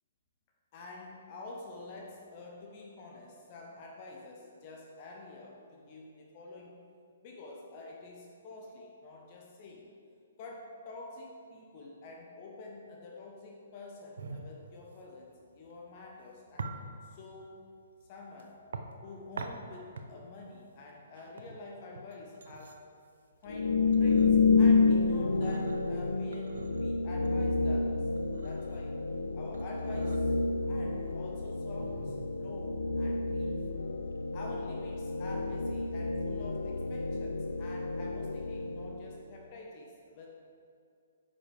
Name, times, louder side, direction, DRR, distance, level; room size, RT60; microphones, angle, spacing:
voice 1, 0.7-6.8 7.2-9.9 10.4-17.7 18.1-18.6 19.0-22.8 23.4-28.1 28.4-29.0 29.3-30.4 30.6-33.6 34.3-40.6, left 3 dB, 35° left, -1 dB, 1.0 m, -48 dB
sound 1, 14.2-33.7, right 3 dB, 60° right, 0.7 m, -47 dB
sound 2, 23.5-39.2, left 4 dB, 70° left, 0.5 m, -29 dB
10.0 x 7.2 x 3.4 m, 2.4 s
figure-of-eight pair, 125°, 0 cm